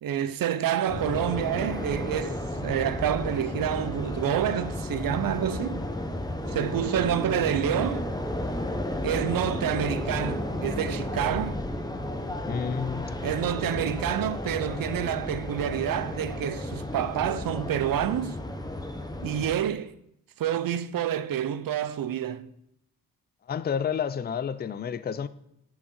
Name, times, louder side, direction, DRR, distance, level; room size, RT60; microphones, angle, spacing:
voice 1, 0.0-5.8 6.5-8.1 9.0-11.6 13.2-18.4 19.2-19.9 20.4-22.5, right 10 dB, 70° right, 0.6 m, -28 dB
sound 1, 0.9-19.5, left 1 dB, 10° left, 0.7 m, -33 dB
voice 2, 12.5-13.2 23.5-25.3, left 7 dB, 30° left, 0.4 m, -30 dB
10.0 x 6.3 x 4.4 m
wide cardioid pair, 160°, 36 cm